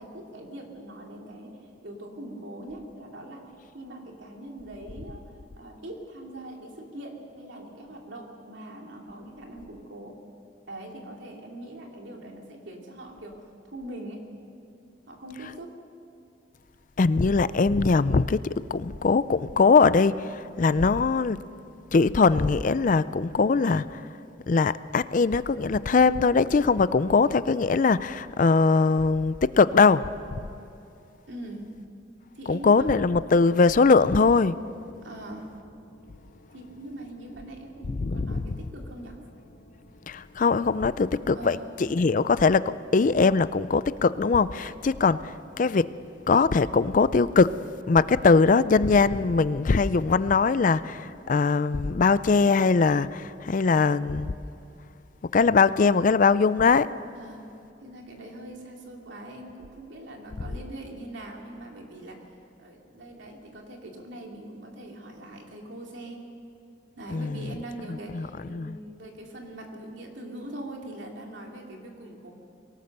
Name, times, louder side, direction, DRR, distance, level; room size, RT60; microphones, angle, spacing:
voice 1, 0.0-3.5 3.7-10.2 10.7-13.4 13.6-14.2 15.1-15.8 31.3-31.7 32.3-32.9 35.0-35.5 36.5-39.2 41.3-41.7 57.1-57.5 57.8-62.2 62.6-66.3 67.0-72.3, right 1 dB, 75° right, 2.9 m, -42 dB
voice 2, 17.0-21.4 21.9-24.1 24.5-30.1 32.5-34.6 37.9-38.5 40.1-45.9 46.3-47.5 47.9-54.3 55.2-56.9 67.1-67.5 67.9-68.8, left 4 dB, 45° left, 0.4 m, -21 dB
sound 1, 34.1-53.9, left 1 dB, 90° left, 4.6 m, -55 dB
23.0 x 18.5 x 6.7 m
head